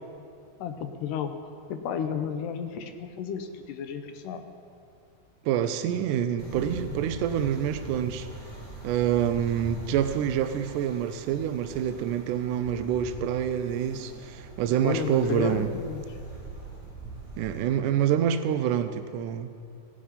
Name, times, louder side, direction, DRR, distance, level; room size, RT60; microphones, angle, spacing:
voice 1, 0.6-1.4 1.7-4.4 14.8-16.2, left 7 dB, 75° left, 8 dB, 2.2 m, -32 dB
voice 2, 5.4-8.3 8.8-15.8 17.4-19.5, right 9 dB, 80° right, 9 dB, 1.8 m, -27 dB
sound 1, 6.4-17.6, right 3 dB, 20° right, 2.3 m, -41 dB
15.5 x 10.0 x 5.6 m, 2.5 s
omnidirectional pair, 4.1 m